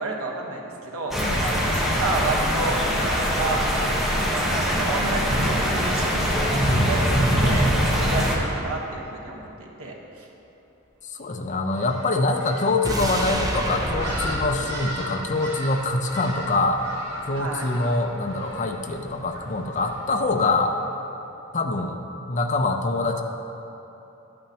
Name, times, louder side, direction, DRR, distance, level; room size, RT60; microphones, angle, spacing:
voice 1, 0.0-3.6 4.3-6.4 6.9-7.0 7.4-10.3 17.3-17.6, right 2 dB, 85° right, -1 dB, 1.2 m, -31 dB
sound 1, 1.1-8.4, equal, ahead, 1.1 m, -22 dB
voice 2, 11.1-16.8 17.3-20.8 21.5-22.0 22.3-23.2, left 2 dB, 35° left, 4 dB, 0.6 m, -24 dB
sound 2, 11.7-20.8, equal, 55° right, 2.1 m, -37 dB
sound 3, 12.8-16.0 16.3-16.4, right 1 dB, 15° right, 0.6 m, -29 dB
11.5 x 8.7 x 2.9 m, 3.0 s
head